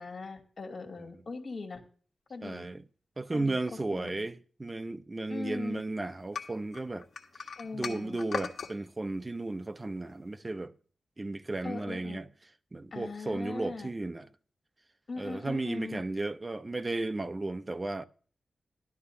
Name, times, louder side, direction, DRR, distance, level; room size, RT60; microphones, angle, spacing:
voice 1, 0.0-1.8 2.3-2.7 3.3-3.6 3.9-4.2 5.3-5.8 7.6-8.2 11.6-12.2 12.9-13.9 15.1-16.0, left 3 dB, 55° left, 2.6 m, -40 dB
voice 2, 2.4-2.8 3.2-7.1 7.7-10.7 11.2-12.3 12.7-14.3 15.2-18.0, right 2 dB, 25° right, 0.6 m, -34 dB
sound 1, 6.3-8.7, left 5 dB, 75° left, 1.4 m, -38 dB
13.5 x 12.0 x 2.7 m
wide cardioid pair, 125°, 0 cm